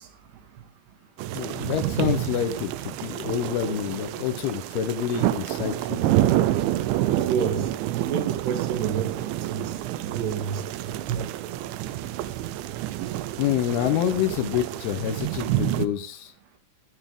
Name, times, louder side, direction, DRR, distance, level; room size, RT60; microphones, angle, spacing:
sound 1, 1.2-15.9, right 14 dB, 80° right, 2.9 m, -28 dB
voice 1, 1.4-6.1 13.4-16.3, left 10 dB, 80° left, 2.3 m, -27 dB
voice 2, 7.1-7.6 7.9-9.6 10.1-10.6 11.1-11.5, right 7 dB, 60° right, 3.8 m, -29 dB
17.0 x 10.5 x 3.8 m
omnidirectional pair, 5.9 m